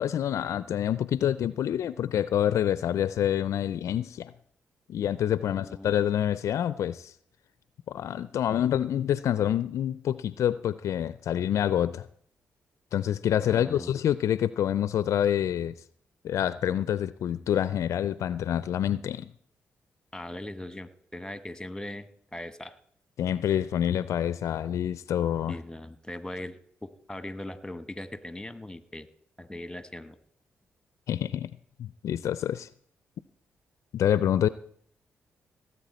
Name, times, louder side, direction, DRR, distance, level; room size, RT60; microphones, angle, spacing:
voice 1, 0.0-4.3 4.9-7.1 7.9-12.1 12.9-15.7 16.2-19.3 23.2-25.6 31.1-31.5 31.8-32.7 33.9-34.5, left 10 dB, 70° left, 17 dB, 0.4 m, -27 dB
voice 2, 5.6-5.9 13.4-13.9 20.1-22.8 25.5-29.1 29.4-30.2, left 1 dB, 10° left, 12 dB, 1.1 m, -40 dB
18.0 x 8.2 x 4.3 m, 0.62 s
supercardioid pair, 45°, 5 cm